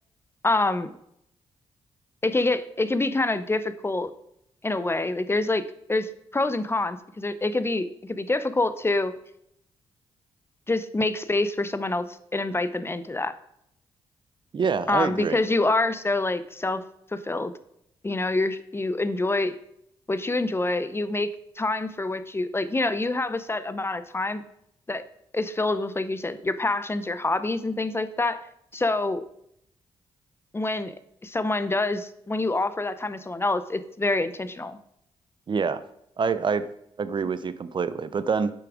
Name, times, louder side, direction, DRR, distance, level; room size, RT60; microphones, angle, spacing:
voice 1, 0.4-0.9 2.2-4.1 4.6-5.6 5.9-9.1 10.7-12.1 12.3-13.3 14.9-16.8 17.1-17.5 18.0-19.6 20.1-21.3 21.6-24.4 24.9-25.0 25.3-28.4 28.7-29.2 30.5-30.9 31.2-34.8, left 2 dB, 20° left, 13 dB, 0.6 m, -26 dB
voice 2, 14.5-15.4 35.5-35.8 36.2-36.6 37.0-38.5, right 5 dB, 45° right, 13 dB, 0.6 m, -26 dB
7.0 x 5.8 x 4.9 m, 0.75 s
supercardioid pair, 55°, 11 cm